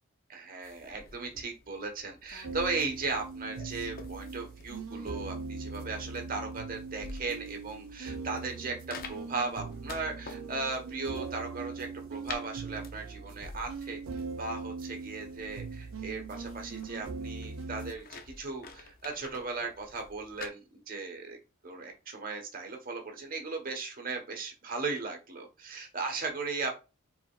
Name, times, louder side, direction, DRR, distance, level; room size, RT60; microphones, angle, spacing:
voice 1, 0.3-14.0 14.4-21.4 21.6-26.7, right 4 dB, 40° right, 3 dB, 1.3 m, -37 dB
sound 1, 0.6-20.5, left 4 dB, 45° left, 0.7 m, -50 dB
sound 2, 2.4-17.9, right 4 dB, 80° right, 0.5 m, -41 dB
5.0 x 4.2 x 2.4 m, 0.29 s
head